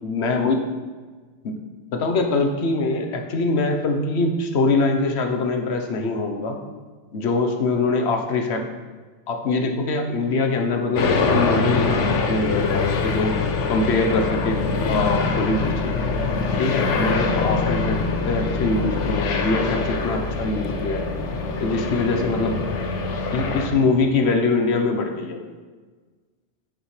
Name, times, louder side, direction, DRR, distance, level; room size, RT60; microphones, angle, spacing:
voice 1, 0.0-0.6 1.4-1.6 1.9-6.6 7.1-8.7 9.3-13.3 13.7-15.9 16.6-21.0 21.6-22.6 23.3-25.5, left 3 dB, 65° left, 4 dB, 1.2 m, -23 dB
sound 1, 11.0-23.7, left 4 dB, 85° left, 1.1 m, -24 dB
10.0 x 6.5 x 3.2 m, 1.4 s
omnidirectional pair, 1.2 m